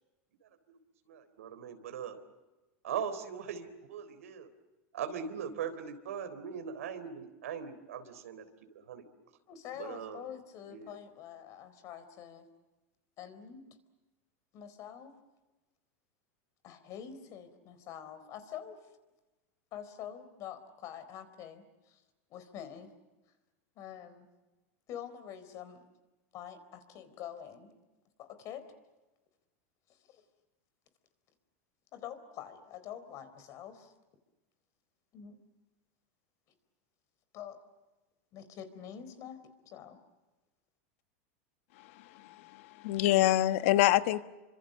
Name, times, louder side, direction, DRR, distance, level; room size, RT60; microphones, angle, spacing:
voice 1, 0.4-0.8 1.0-2.2 2.8-4.5 4.9-8.5 8.9-9.0 9.8-10.3 10.6-11.0, right 7 dB, 90° right, 9 dB, 3.7 m, -40 dB
voice 2, 9.5-12.5 13.2-13.6 14.5-15.2 16.6-18.8 19.7-22.0 22.3-22.9 23.8-24.3 24.9-25.8 26.3-27.7 28.2-28.7 29.9-30.2 31.9-33.9 35.1-35.4 37.3-37.6 38.3-40.0, left 9 dB, 45° left, 11 dB, 4.1 m, -46 dB
voice 3, 41.8-44.2, left 15 dB, 65° left, 12 dB, 1.2 m, -27 dB
29.5 x 25.5 x 6.7 m, 1.1 s
supercardioid pair, 125°, 8 cm